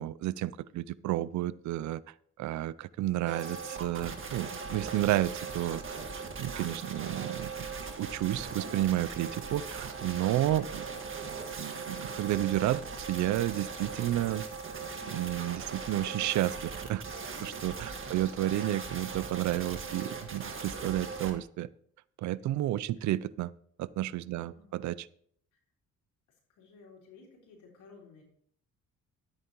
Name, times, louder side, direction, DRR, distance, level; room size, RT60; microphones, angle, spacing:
voice 1, 0.0-2.0 2.4-6.0 6.4-7.7 8.0-10.7 11.6-14.4 15.1-17.0 17.4-21.7 22.2-23.5 23.8-25.0, right 14 dB, 70° right, 19 dB, 0.5 m, -31 dB
sound 1, 3.2-21.3, right 4 dB, 45° right, 1.7 m, -39 dB
voice 2, 24.3-24.8 25.5-25.6 26.5-28.2, left 4 dB, 80° left, -1 dB, 3.9 m, -56 dB
13.0 x 9.1 x 3.0 m, 0.63 s
cardioid pair, 90°, 30 cm